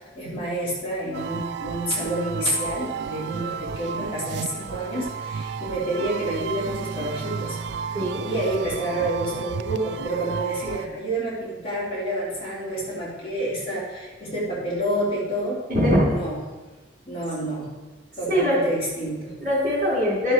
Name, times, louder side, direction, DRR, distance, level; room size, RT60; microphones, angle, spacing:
voice 1, 0.1-7.6 8.2-15.6 16.0-16.4 17.1-17.7 18.2-19.3, right 1 dB, 30° left, -7 dB, 3.3 m, -28 dB
sound 1, 1.1-10.9, right 6 dB, 60° right, 0.3 m, -33 dB
voice 2, 7.9-8.3 15.7-16.1 18.3-18.6 19.4-20.3, equal, 45° right, -5 dB, 3.5 m, -21 dB
11.0 x 7.1 x 4.6 m, 1.2 s
head